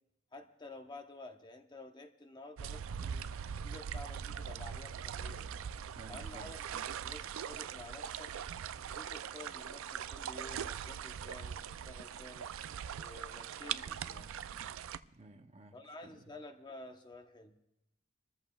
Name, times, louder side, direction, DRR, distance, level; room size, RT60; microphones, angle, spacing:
voice 1, 0.3-3.3 3.6-5.5 6.1-6.6 6.9-8.3 8.9-12.5 13.0-14.3 15.7-17.5, left 2 dB, 20° left, 5 dB, 0.9 m, -51 dB
sound 1, 2.6-15.0, right 8 dB, 70° right, 0.4 m, -41 dB
voice 2, 5.9-6.5 15.0-16.3, right 2 dB, 30° right, 6 dB, 0.7 m, -55 dB
26.5 x 14.0 x 2.3 m, 0.88 s
head